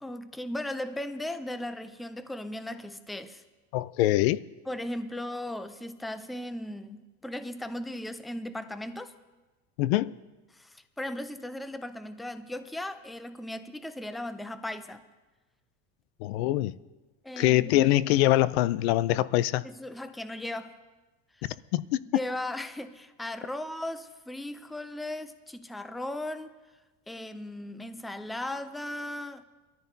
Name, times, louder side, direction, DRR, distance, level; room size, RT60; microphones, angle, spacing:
voice 1, 0.0-3.4 4.7-9.1 10.5-15.0 17.2-17.9 19.6-20.7 22.1-26.5 27.1-29.4, left 1 dB, ahead, 0.4 m, -37 dB
voice 2, 3.7-4.4 9.8-10.2 16.2-16.8 17.4-19.6 21.7-22.0, left 15 dB, 90° left, 0.5 m, -24 dB
22.5 x 14.0 x 2.7 m
cardioid pair, 140°, 31 cm